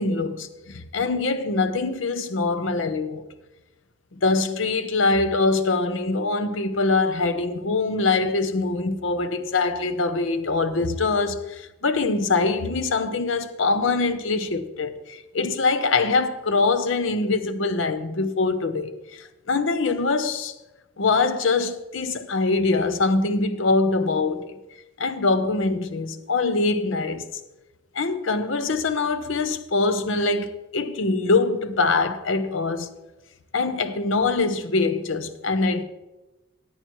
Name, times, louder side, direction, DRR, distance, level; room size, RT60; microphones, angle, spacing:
voice 1, 0.0-3.2 4.1-20.5 21.0-24.6 25.0-27.2 27.9-32.9 33.5-35.8, left 3 dB, 65° left, 0.8 m, -23 dB
13.5 x 9.5 x 3.1 m
head